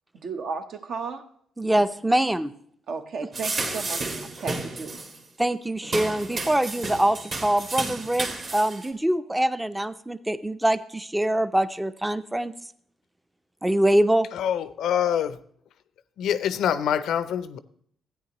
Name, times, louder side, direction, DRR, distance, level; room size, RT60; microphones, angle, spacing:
voice 1, 0.2-1.3 1.8-1.9 2.9-5.0 6.4-6.5, right 5 dB, 60° right, 0.9 m, -34 dB
voice 2, 1.6-2.5 5.4-12.5 13.6-14.3, right 1 dB, 10° right, 0.5 m, -24 dB
sound 1, 3.3-5.2 5.8-8.9, right 3 dB, 45° right, 1.9 m, -32 dB
voice 3, 14.3-15.4 16.2-17.6, left 9 dB, 75° left, 0.5 m, -25 dB
13.5 x 9.2 x 2.9 m
cardioid pair, 90°, 0 cm